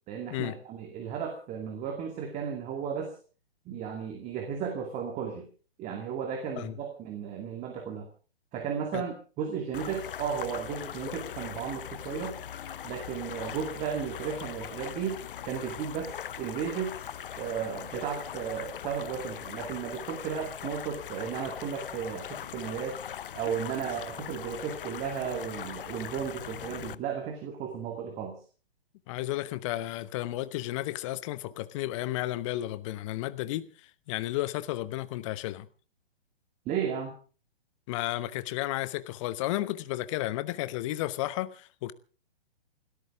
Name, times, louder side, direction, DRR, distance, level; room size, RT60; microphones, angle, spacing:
voice 1, 0.1-3.2 3.7-5.5 5.8-8.1 8.5-12.3 12.8-17.0 17.4-23.0 23.3-28.4 36.7-37.2, right 7 dB, 25° right, 2.4 m, -34 dB
sound 1, 9.7-26.9, left 10 dB, 55° left, 0.8 m, -40 dB
voice 2, 29.1-33.7 34.1-35.7 37.9-41.9, left 16 dB, 30° left, 1.0 m, -33 dB
28.5 x 13.0 x 3.6 m
figure-of-eight pair, 125°, 31 cm